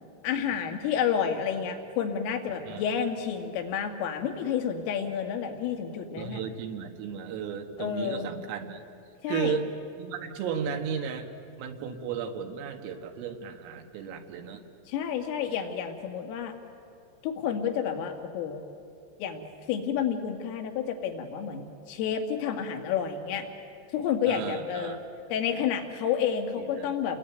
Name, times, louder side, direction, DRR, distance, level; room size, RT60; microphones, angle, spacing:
voice 1, 0.2-6.4 7.8-8.3 9.2-9.6 14.9-16.6 17.2-18.6 19.2-19.4 19.7-23.5 23.9-25.0 25.3-27.2, left 8 dB, 80° left, 5 dB, 4.6 m, -30 dB
voice 2, 6.2-8.8 9.3-9.7 10.0-11.3 11.6-14.6 24.3-25.0 26.6-26.9, right 7 dB, 80° right, 6 dB, 4.3 m, -34 dB
29.5 x 21.0 x 9.4 m, 2.5 s
omnidirectional pair, 5.9 m